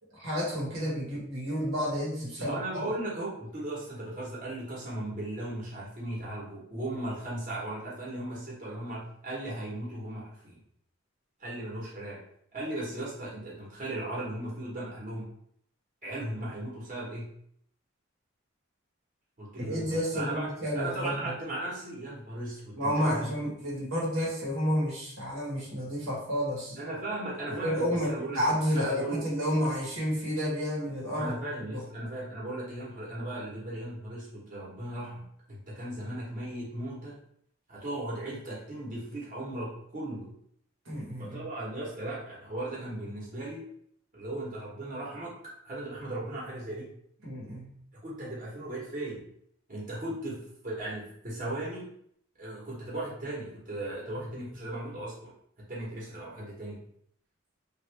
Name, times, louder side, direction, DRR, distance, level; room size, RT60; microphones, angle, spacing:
voice 1, 0.1-2.8 19.6-21.3 22.7-26.8 27.5-31.3 31.7-31.8 40.8-41.5 47.2-47.7, equal, 75° right, -4 dB, 1.2 m, -30 dB
voice 2, 2.4-10.6 11.4-12.2 12.5-15.3 16.0-17.3 19.4-20.5 20.7-23.3 26.8-28.4 28.7-29.2 31.2-37.2 37.7-40.3 41.2-43.6 44.1-45.3 45.6-46.9 48.0-49.2 49.7-51.9 52.4-55.3 55.7-56.8, right 1 dB, 40° right, -6 dB, 1.2 m, -37 dB
3.1 x 2.5 x 3.3 m, 0.69 s
head